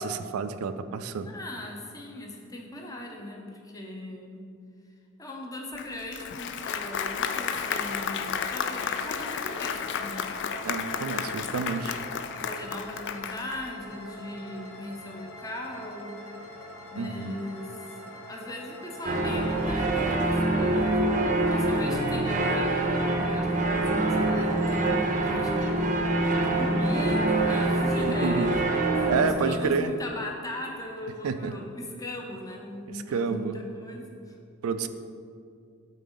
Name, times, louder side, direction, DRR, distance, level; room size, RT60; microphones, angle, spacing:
voice 1, 0.0-1.3 10.6-12.0 16.9-17.4 28.1-28.5 29.1-29.9 31.2-31.5 32.9-33.6 34.6-34.9, right 5 dB, 90° right, 10 dB, 0.4 m, -29 dB
voice 2, 1.3-4.5 5.2-10.3 11.1-11.6 12.3-16.2 16.9-25.9 26.2-34.4, left 1 dB, 15° left, 0 dB, 0.7 m, -39 dB
Applause, 5.8-13.7, left 7 dB, 55° left, 0.3 m, -32 dB
sound 1, 6.7-21.5, equal, 80° left, 0.9 m, -45 dB
sound 2, 19.0-29.3, right 2 dB, 35° right, 0.6 m, -25 dB
8.3 x 4.1 x 3.9 m, 2.4 s
head